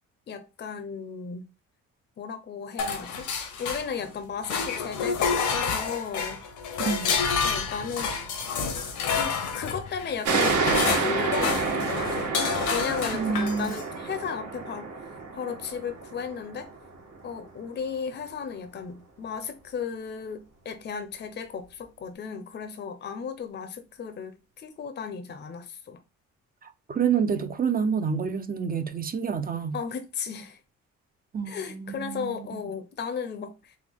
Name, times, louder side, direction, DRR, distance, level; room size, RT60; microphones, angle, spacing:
voice 1, 0.3-1.5 2.2-3.3 3.6-6.4 7.4-8.1 9.1-12.3 12.7-14.9 15.3-16.7 17.2-26.0 29.7-30.6 31.5-33.8, left 6 dB, 35° left, 0.6 m, -35 dB
sound 1, 2.8-4.1 4.4-13.9, left 5 dB, 75° left, 0.9 m, -29 dB
voice 2, 6.8-7.1 13.1-13.7 26.6-29.8 31.3-32.6, right 6 dB, 30° right, 0.5 m, -28 dB
sound 2, 10.2-17.4, right 4 dB, 70° right, 1.3 m, -29 dB
3.5 x 2.1 x 3.5 m
cardioid pair, 90°, 30 cm